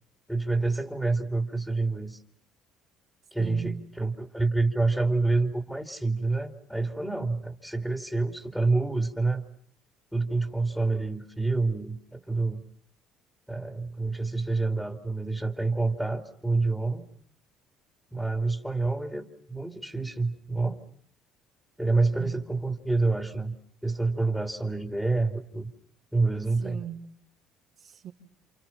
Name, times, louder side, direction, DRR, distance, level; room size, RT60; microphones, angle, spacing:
voice 1, 0.3-2.2 3.3-9.4 10.1-12.6 13.5-17.1 18.1-20.8 21.8-23.6 23.8-25.7 26.1-26.8, right 3 dB, ahead, 2.8 m, -27 dB
voice 2, 3.4-3.9 22.1-22.4 26.6-27.2 27.8-28.1, right 9 dB, 60° right, 3.7 m, -39 dB
30.0 x 28.0 x 5.8 m
supercardioid pair, 90°, 0 cm